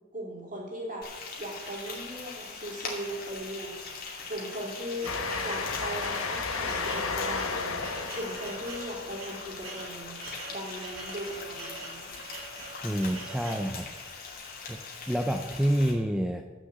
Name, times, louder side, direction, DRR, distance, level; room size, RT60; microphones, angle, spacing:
voice 1, 0.1-1.1 1.4-3.8 4.3-5.1 5.4-7.8 8.1-10.2 10.5-12.2, equal, 40° right, -1 dB, 3.4 m, -38 dB
Frying (food), 1.0-15.9, left 4 dB, 45° left, 2.7 m, -42 dB
sound 1, 1.6-2.5 3.2-3.3 3.6-3.7 4.4-13.7, right 3 dB, 90° right, 3.4 m, -44 dB
Train, 5.0-11.2, left 4 dB, 90° left, 1.1 m, -34 dB
voice 2, 12.8-13.9 14.7-14.8 15.1-16.4, equal, 5° right, 4 dB, 0.5 m, -28 dB
13.0 x 6.6 x 7.9 m, 1.3 s
head